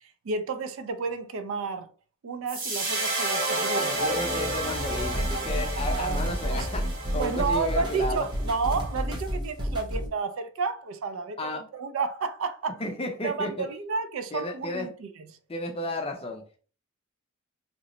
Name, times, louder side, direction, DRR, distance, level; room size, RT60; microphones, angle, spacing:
voice 1, 0.2-1.9 2.2-4.0 5.8-6.7 7.2-12.7 13.2-15.3, right 4 dB, 60° right, 0.4 m, -31 dB
sound 1, 2.5-8.9, right 2 dB, 40° right, 1.2 m, -31 dB
voice 2, 3.9-8.3 11.4-11.6 12.8-13.7 14.3-14.9 15.5-16.6, left 2 dB, 25° left, 0.5 m, -33 dB
sound 2, 5.0-10.1, equal, 20° right, 0.6 m, -31 dB
2.9 x 2.0 x 3.9 m
head